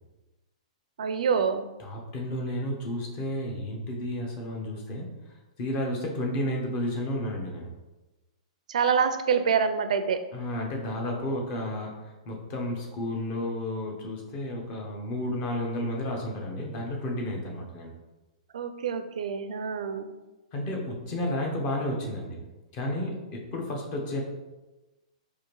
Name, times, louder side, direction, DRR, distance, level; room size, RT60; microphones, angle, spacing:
voice 1, 1.0-1.7 8.7-10.2 18.5-20.1, right 6 dB, 80° right, 8 dB, 0.4 m, -26 dB
voice 2, 1.8-5.1 5.6-7.7 10.3-17.9 20.5-22.4 22.7-24.2, left 1 dB, 30° left, 0 dB, 0.8 m, -32 dB
4.8 x 2.5 x 3.0 m, 1.1 s
hypercardioid pair, 160°, 4 cm